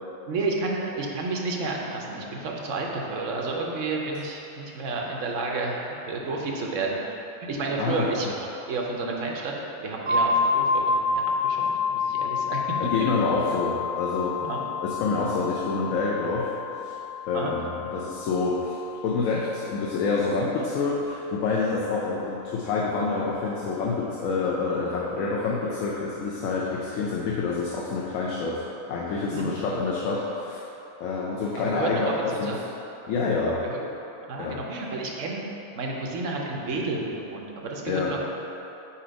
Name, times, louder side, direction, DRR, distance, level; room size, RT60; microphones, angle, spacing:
voice 1, 0.3-7.0 7.4-12.7 13.0-13.4 14.4-14.6 17.3-17.5 29.3-29.6 31.7-32.6 33.6-33.8 34.3-35.4 35.8-38.2, right 3 dB, 70° right, -1 dB, 1.1 m, -31 dB
voice 2, 7.8-8.1 12.8-14.4 14.8-16.5 16.8-17.0 17.3-28.6 28.9-30.6 31.0-32.6 33.1-33.6 34.4-34.6 37.9-38.1, left 4 dB, 75° left, -4 dB, 1.0 m, -27 dB
sound 1, 10.1-19.7, left 4 dB, 90° right, 1.1 m, -28 dB
4.4 x 4.3 x 5.0 m, 3.0 s
omnidirectional pair, 1.4 m